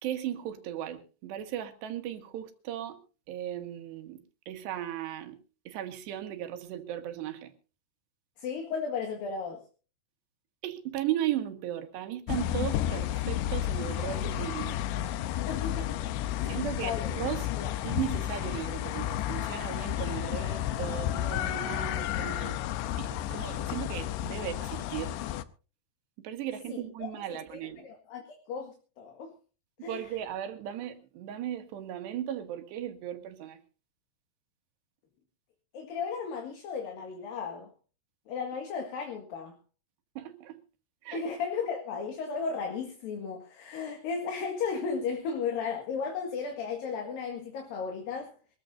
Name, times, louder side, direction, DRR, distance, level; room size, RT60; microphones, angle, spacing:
voice 1, 0.0-3.0 3.3-5.4 5.7-7.5 10.6-14.8 16.5-17.5 17.8-22.6 23.0-25.2 26.2-27.8 29.8-33.6 40.2-40.6 41.0-41.2, right 11 dB, 85° right, 3.8 m, -36 dB
voice 2, 8.4-9.6 15.5-17.1 17.5-17.8 26.7-27.1 27.8-29.3 29.8-30.0 35.7-37.7 38.3-39.6 41.1-48.3, left 5 dB, 65° left, 3.4 m, -35 dB
sound 1, 12.3-25.4, left 12 dB, 90° left, 3.0 m, -32 dB
24.0 x 14.5 x 2.7 m
omnidirectional pair, 4.8 m